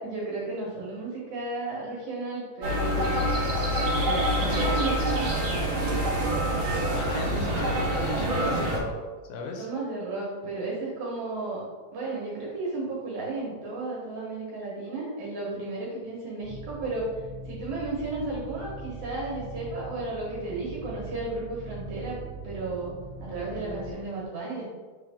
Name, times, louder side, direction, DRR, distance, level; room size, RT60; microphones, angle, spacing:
voice 1, 0.0-3.2 4.0-5.7 9.6-11.6 11.9-17.1 17.5-22.9 23.2-24.6, right 2 dB, 65° right, -5 dB, 2.4 m, -33 dB
sound 1, 2.6-8.8, right 1 dB, 45° right, 2.0 m, -26 dB
voice 2, 6.9-8.9 9.2-9.7, left 4 dB, 70° left, 2 dB, 2.0 m, -36 dB
sound 2, 16.4-23.9, right 2 dB, 85° right, 0.6 m, -41 dB
7.8 x 4.0 x 3.5 m, 1.4 s
omnidirectional pair, 3.8 m